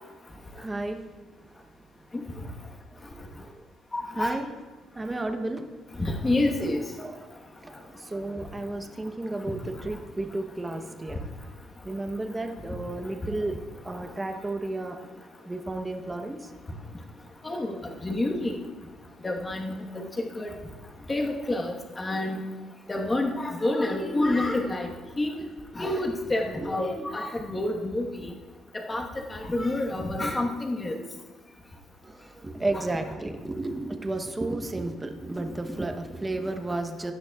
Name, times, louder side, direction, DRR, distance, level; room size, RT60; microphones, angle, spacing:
voice 1, 0.6-1.0 3.4-3.6 4.2-4.5 4.9-5.6 7.0-7.1 7.6-11.3 11.8-15.0 15.5-16.5 24.8-24.9 25.3-25.5 25.7-26.1 26.6-26.7 32.0-37.1, right 2 dB, 15° right, 5 dB, 0.9 m, -33 dB
voice 2, 3.9-4.4 6.0-6.8 17.4-17.8 18.0-18.6 19.2-20.0 20.3-20.5 21.1-22.4 22.9-24.9 25.2-25.3 25.7-28.3 28.9-31.0 32.7-32.8, left 2 dB, 15° left, 1 dB, 1.3 m, -28 dB
16.5 x 12.0 x 2.4 m, 1.3 s
cardioid pair, 155°, 0 cm